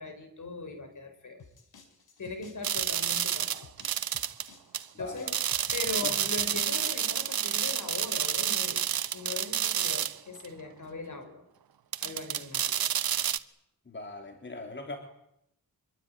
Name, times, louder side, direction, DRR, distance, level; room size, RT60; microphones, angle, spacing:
voice 1, 0.0-1.4 2.2-3.7 5.0-5.4 5.7-11.4 12.0-12.8, left 3 dB, 55° left, 8 dB, 5.7 m, -40 dB
sound 1, 1.4-6.9, left 5 dB, 85° left, 4.9 m, -55 dB
sound 2, 2.6-4.5 4.7-4.8 5.3-10.2 10.4-10.5 11.9-13.4, right 9 dB, 80° right, 1.2 m, -29 dB
voice 2, 4.9-5.3 6.0-6.1 13.9-15.0, left 2 dB, 30° left, 4 dB, 3.4 m, -40 dB
25.5 x 23.0 x 9.0 m, 0.79 s
wide cardioid pair, 120°, 36 cm